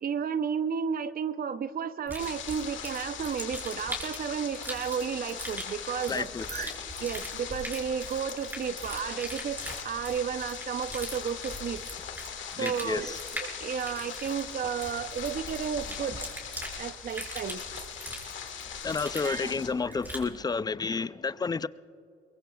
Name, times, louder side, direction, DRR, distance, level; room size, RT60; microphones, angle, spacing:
voice 1, 0.0-11.8 12.6-16.3 16.8-17.6 19.2-20.0, right 7 dB, 50° right, 0.6 m, -33 dB
sound 1, 2.1-20.3, equal, 10° right, 4.9 m, -41 dB
sound 2, 2.2-19.7, left 8 dB, 70° left, 1.6 m, -40 dB
voice 2, 6.1-6.7 12.5-13.2 18.8-21.7, left 4 dB, 20° left, 0.4 m, -31 dB
22.5 x 22.5 x 2.4 m
cardioid pair, 90°, 20 cm